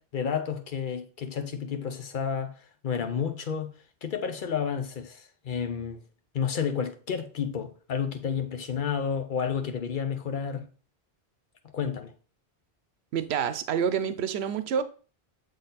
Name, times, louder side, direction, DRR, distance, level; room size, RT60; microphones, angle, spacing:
voice 1, 0.0-2.6 2.8-3.7 4.0-6.0 6.3-10.7 11.7-12.1, left 7 dB, 55° left, 0.9 m, -31 dB
voice 2, 13.1-14.8, right 7 dB, 85° right, 0.9 m, -27 dB
7.0 x 4.0 x 4.0 m
omnidirectional pair, 1.1 m